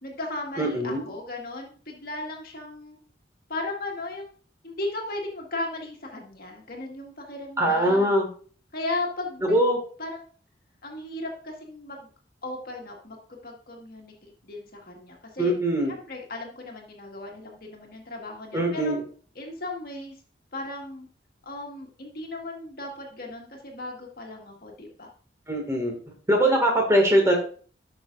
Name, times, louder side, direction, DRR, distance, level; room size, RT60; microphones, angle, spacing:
voice 1, 0.0-3.0 3.5-4.3 4.6-8.1 8.7-9.6 10.0-10.2 10.8-12.1 12.4-15.5 15.9-18.9 19.3-20.2 20.5-21.1 21.4-25.1, left 2 dB, 50° left, 0 dB, 1.7 m, -36 dB
voice 2, 0.6-1.0 7.6-8.3 9.5-9.8 15.4-15.9 18.5-19.0 25.5-25.9 26.3-27.4, right 1 dB, 15° right, 1 dB, 2.1 m, -22 dB
11.5 x 6.0 x 2.6 m, 0.41 s
head